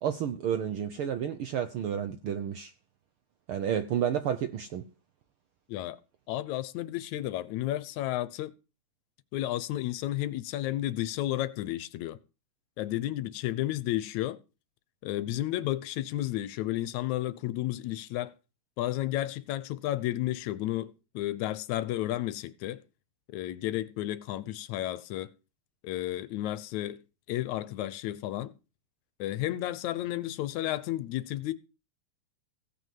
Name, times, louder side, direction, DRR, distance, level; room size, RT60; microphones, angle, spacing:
voice 1, 0.0-2.7 3.5-4.9, right 9 dB, 75° right, 1.2 m, -31 dB
voice 2, 6.3-8.5 9.3-12.2 12.8-14.4 15.0-18.3 18.8-22.8 23.3-25.3 25.8-27.0 27.3-28.5 29.2-31.5, left 14 dB, 80° left, 2.1 m, -32 dB
16.5 x 5.7 x 7.5 m
omnidirectional pair, 3.3 m